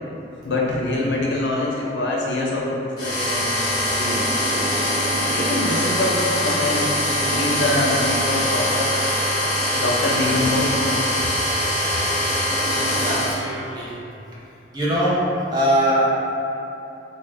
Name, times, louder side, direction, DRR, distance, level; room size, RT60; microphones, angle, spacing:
voice 1, 0.4-3.6 3.9-4.7 5.3-9.0 9.7-10.7, left 2 dB, 80° left, -3 dB, 0.5 m, -24 dB
sound 1, 3.0-13.3, equal, 25° left, 0.9 m, -22 dB
voice 2, 12.7-13.9 14.7-15.2 15.5-16.2, right 1 dB, 20° right, -9 dB, 0.5 m, -22 dB
3.0 x 2.1 x 3.4 m, 2.9 s
head